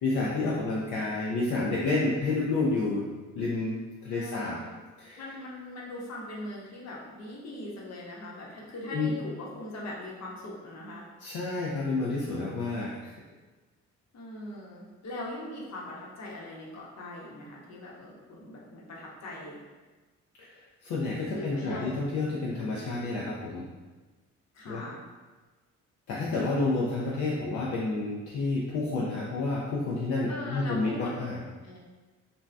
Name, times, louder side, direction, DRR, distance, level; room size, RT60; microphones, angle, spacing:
voice 1, 0.0-3.8 4.0-4.6 5.0-5.2 8.9-9.1 11.2-13.1 20.4-20.5 20.8-23.6 24.7-24.8 26.1-31.4, left 3 dB, 75° left, -5 dB, 0.5 m, -29 dB
voice 2, 4.1-4.7 5.2-11.0 14.1-19.6 21.3-22.1 24.5-25.0 30.3-31.2 31.6-31.8, left 1 dB, 60° left, -4 dB, 0.9 m, -40 dB
2.6 x 2.2 x 3.2 m, 1.3 s
cardioid pair, 90°, 30 cm